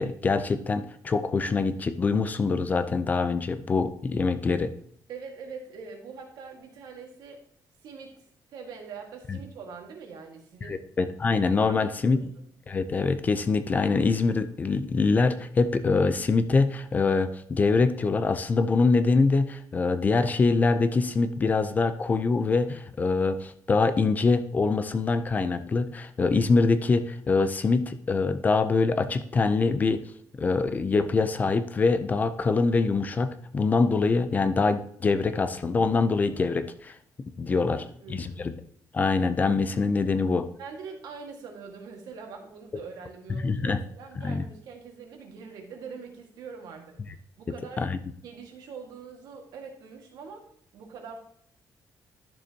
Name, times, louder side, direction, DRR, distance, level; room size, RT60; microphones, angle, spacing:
voice 1, 0.0-4.7 9.3-9.4 10.7-12.2 12.7-30.0 30.4-37.0 37.4-37.8 38.1-38.5 38.9-40.5 43.4-43.8 44.2-44.4 47.8-48.0, left 4 dB, 25° left, 11 dB, 0.5 m, -24 dB
voice 2, 5.1-7.4 7.8-10.8 11.7-11.8 12.1-12.3 37.6-38.5 40.6-47.0 47.4-47.9 48.2-50.4 50.7-51.2, right 5 dB, 75° right, 3 dB, 1.8 m, -43 dB
12.0 x 6.7 x 2.8 m, 0.64 s
cardioid pair, 170°, 7 cm